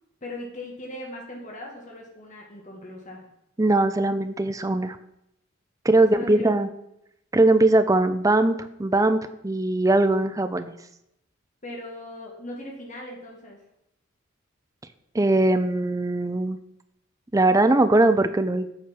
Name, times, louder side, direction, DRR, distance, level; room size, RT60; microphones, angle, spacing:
voice 1, 0.2-3.3 6.1-6.4 11.6-13.6, left 1 dB, 40° left, -1 dB, 1.8 m, -39 dB
voice 2, 3.6-5.0 5.8-6.7 7.3-10.7 15.1-16.6 17.3-18.7, right 2 dB, 15° right, 11 dB, 0.5 m, -20 dB
8.6 x 5.1 x 5.9 m, 0.81 s
head